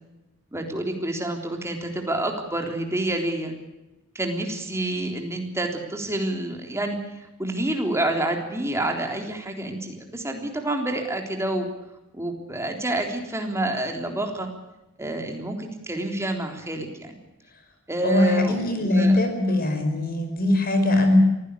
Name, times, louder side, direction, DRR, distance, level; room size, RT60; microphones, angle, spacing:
voice 1, 0.5-3.6 4.1-11.7 12.1-14.5 15.0-17.1 17.9-19.2 19.5-19.6, right 1 dB, 15° right, 3 dB, 3.7 m, -28 dB
voice 2, 18.0-21.2, left 2 dB, 45° left, 6 dB, 5.3 m, -21 dB
23.5 x 16.5 x 8.5 m, 0.97 s
head